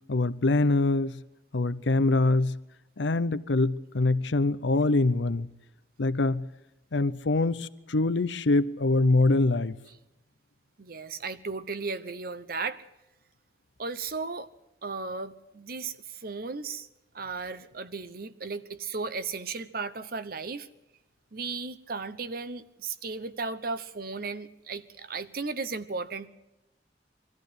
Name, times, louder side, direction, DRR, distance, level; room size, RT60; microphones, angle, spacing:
voice 1, 0.1-1.2 1.5-2.6 3.0-5.5 6.0-6.4 6.9-9.8, left 2 dB, 85° left, 0.8 m, -24 dB
voice 2, 10.8-12.8 13.8-14.5 14.8-16.9 17.1-20.7 21.3-26.3, right 4 dB, 55° right, 0.9 m, -35 dB
23.0 x 14.0 x 8.1 m
head